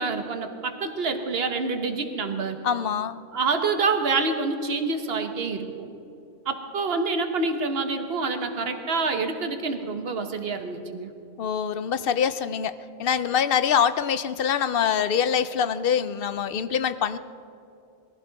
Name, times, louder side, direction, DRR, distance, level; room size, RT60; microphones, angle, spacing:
voice 1, 0.0-2.6 3.3-5.9 6.4-11.1, right 4 dB, 55° right, 6 dB, 1.4 m, -27 dB
voice 2, 2.6-3.2 11.4-17.2, left 8 dB, 60° left, 13 dB, 0.7 m, -24 dB
21.5 x 15.0 x 4.1 m, 2.7 s
omnidirectional pair, 1.2 m